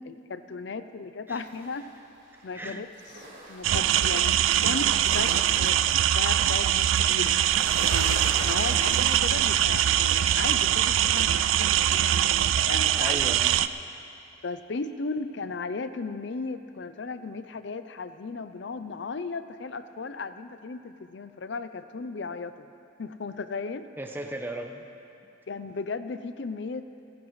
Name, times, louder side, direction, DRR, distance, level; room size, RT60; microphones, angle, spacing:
voice 1, 0.0-1.9 2.4-2.9 3.5-7.4 7.9-13.2 14.4-22.7 23.0-23.9 25.5-26.9, left 4 dB, 60° left, 11 dB, 0.5 m, -36 dB
sound 1, 1.3-2.7 2.9-9.5, right 2 dB, 65° right, 4.0 m, -41 dB
voice 2, 2.4-2.8 8.7-8.9 12.9-13.6 24.0-24.8, right 1 dB, 10° right, 3 dB, 0.7 m, -36 dB
sound 2, 3.6-13.7, right 11 dB, 85° right, 0.4 m, -23 dB
30.0 x 11.0 x 3.2 m, 2.7 s
head